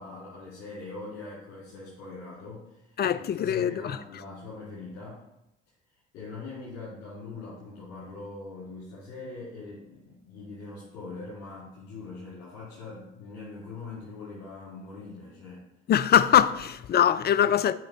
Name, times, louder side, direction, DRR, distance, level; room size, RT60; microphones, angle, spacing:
voice 1, 0.0-5.2 6.1-15.6, left 3 dB, 65° left, 2.5 m, -42 dB
voice 2, 3.0-4.0 15.9-17.7, left 9 dB, 30° left, 0.4 m, -22 dB
7.6 x 5.1 x 3.0 m
hypercardioid pair, 50°, 31 cm